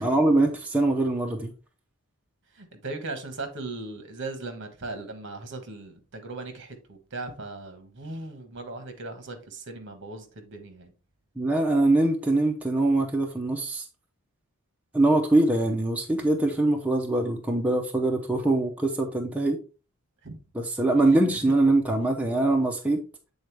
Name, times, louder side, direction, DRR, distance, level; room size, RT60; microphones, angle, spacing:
voice 1, 0.0-1.5 11.4-13.8 14.9-19.6 20.5-23.0, right 2 dB, 5° right, 0.6 m, -23 dB
voice 2, 2.5-10.9 20.2-20.4 21.1-21.4, right 2 dB, 55° right, 1.3 m, -38 dB
8.0 x 3.9 x 3.3 m
head